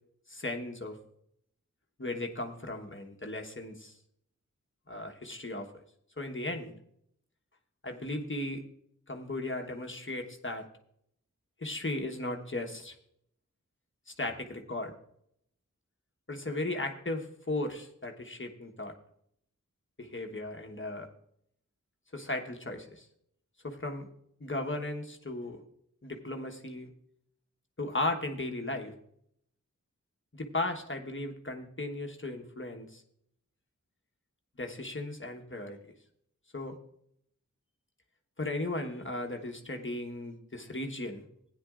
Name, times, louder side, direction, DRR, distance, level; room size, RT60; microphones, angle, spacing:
voice 1, 0.3-1.0 2.0-4.0 4.9-5.8 6.2-6.7 7.8-8.6 9.1-10.6 11.6-12.9 14.1-14.9 16.3-18.9 20.0-21.1 22.1-23.1 23.6-24.1 24.4-25.6 26.0-26.9 27.8-28.9 30.3-33.0 34.6-35.8 36.5-36.8 38.4-41.2, left 2 dB, 40° left, 3 dB, 1.2 m, -36 dB
16.0 x 9.8 x 2.4 m, 0.72 s
wide cardioid pair, 40°, 31 cm